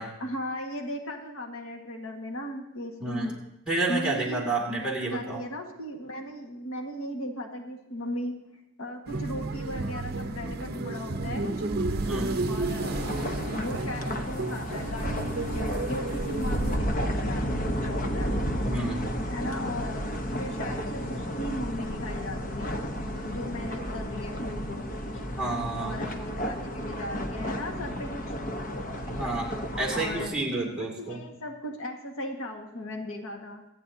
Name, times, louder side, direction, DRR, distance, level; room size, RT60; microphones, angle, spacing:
voice 1, 0.2-3.4 3.9-8.4 8.8-11.7 12.5-13.0 13.5-18.3 19.3-20.0 20.4-22.8 23.2-24.9 25.1-25.2 25.8-28.3 29.9-30.4 30.7-33.6, left 1 dB, 85° left, 2 dB, 1.6 m, -37 dB
voice 2, 3.0-3.3 3.7-5.4 12.0-12.4 18.7-19.0 25.4-26.0 29.1-29.5 29.8-31.2, right 2 dB, 5° right, -4 dB, 2.3 m, -30 dB
sound 1, 9.1-16.8, right 2 dB, 45° right, 0.7 m, -32 dB
sound 2, 12.8-30.3, equal, 40° left, 0.9 m, -32 dB
26.0 x 9.1 x 2.7 m, 0.86 s
head